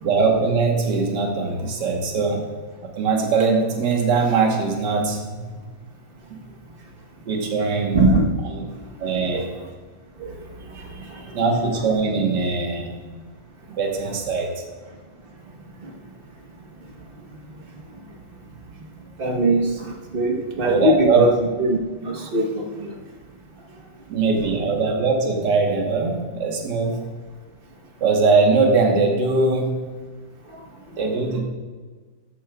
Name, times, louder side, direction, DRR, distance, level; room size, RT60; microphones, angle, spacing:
voice 1, 0.0-2.4 3.0-5.5 7.3-8.0 8.5-8.6 9.0-9.5 11.3-12.9 13.8-14.5 20.6-21.3 24.1-27.0 28.0-29.8 31.0-31.4, right 4 dB, 65° right, 1 dB, 1.9 m, -21 dB
voice 2, 7.9-8.3 9.3-9.5 10.2-10.3 19.2-19.7 20.1-21.3 21.6-22.9, right 1 dB, 35° right, 1 dB, 1.1 m, -20 dB
13.5 x 8.4 x 2.3 m, 1.4 s
omnidirectional pair, 2.1 m